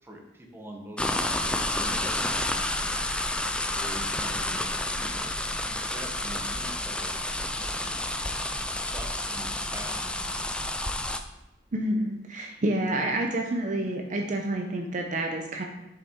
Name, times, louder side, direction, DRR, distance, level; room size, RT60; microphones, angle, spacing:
voice 1, 0.0-3.0 3.7-4.6 4.9-8.2 8.8-10.5, right 1 dB, 15° right, 1 dB, 0.9 m, -45 dB
sound 1, 1.0-11.2, left 1 dB, 5° left, 0.4 m, -30 dB
voice 2, 11.7-15.6, right 1 dB, 45° right, 2 dB, 0.6 m, -28 dB
7.0 x 5.7 x 3.6 m, 0.91 s
head